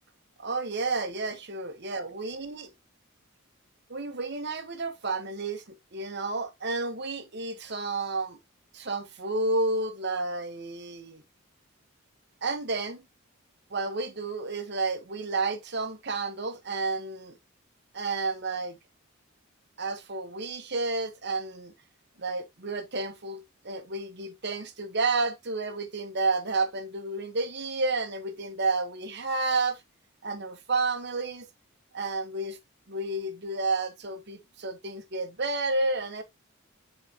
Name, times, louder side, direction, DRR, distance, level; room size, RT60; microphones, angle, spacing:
voice 1, 0.4-2.7 3.9-8.4 8.7-11.2 12.4-13.0 13.7-17.3 17.9-18.8 19.8-21.7 22.2-29.8 30.2-31.5 31.9-32.6 32.9-36.2, right 3 dB, 50° right, 1.2 m, -31 dB
9.2 x 4.2 x 2.8 m
head